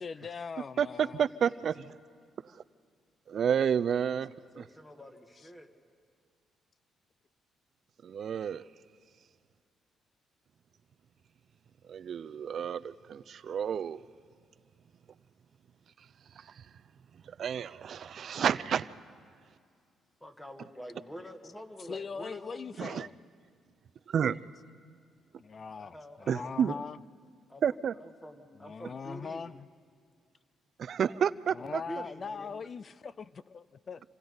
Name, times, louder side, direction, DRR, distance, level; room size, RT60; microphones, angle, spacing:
voice 1, 0.0-1.2 21.9-23.1 25.4-27.0 28.6-29.7 31.5-34.0, left 5 dB, 40° left, 0.4 m, -41 dB
voice 2, 0.8-2.0 3.3-4.3 4.6-4.7 8.0-8.6 11.9-14.0 16.4-16.5 17.3-18.9 22.8-23.1 24.1-24.4 26.3-26.7 27.6-27.9 30.8-31.8, right 8 dB, 60° right, 0.5 m, -30 dB
voice 3, 4.5-5.7 20.2-23.0 25.8-26.8 27.5-27.6 28.0-29.5 31.6-32.6, equal, 10° left, 2.1 m, -47 dB
28.0 x 25.5 x 4.0 m
cardioid pair, 90°, 0 cm